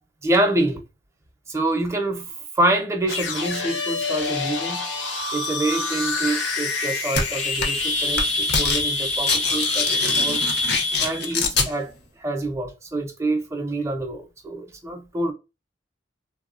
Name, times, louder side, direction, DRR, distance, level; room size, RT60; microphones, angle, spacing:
voice 1, 0.2-0.8 1.5-4.8 5.3-10.4 11.0-11.9 12.2-15.3, right 2 dB, 15° right, 0.5 m, -26 dB
sound 1, 3.1-11.3, left 3 dB, 85° left, 0.9 m, -26 dB
sound 2, 7.1-7.2 7.6-7.9 8.1-8.8 9.1-11.7, left 4 dB, 60° left, 0.7 m, -24 dB
3.1 x 2.1 x 2.4 m
head